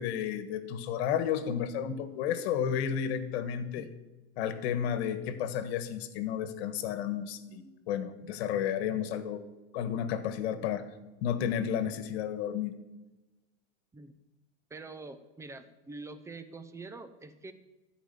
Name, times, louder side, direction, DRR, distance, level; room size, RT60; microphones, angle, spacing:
voice 1, 0.0-3.9 4.4-9.4 9.7-10.8 11.2-12.7, left 9 dB, 65° left, 11 dB, 1.5 m, -32 dB
voice 2, 14.7-17.5, right 3 dB, 10° right, 10 dB, 0.8 m, -45 dB
13.5 x 5.2 x 9.2 m, 1.1 s
supercardioid pair, 145°, 34 cm